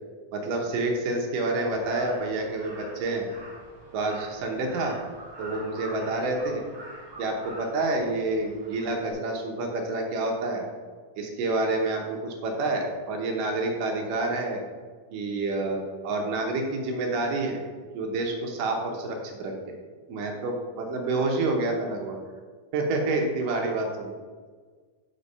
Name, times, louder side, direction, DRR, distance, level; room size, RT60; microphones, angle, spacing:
voice 1, 0.3-3.3 3.9-5.0 5.4-6.6 7.2-10.7 11.2-14.6 15.1-17.6 17.9-19.8 20.1-22.2 22.7-24.1, right 2 dB, 70° right, 1 dB, 2.2 m, -28 dB
Crow, 1.7-9.1, right 1 dB, 10° right, 1.1 m, -45 dB
6.8 x 5.2 x 5.3 m, 1.5 s
omnidirectional pair, 4.4 m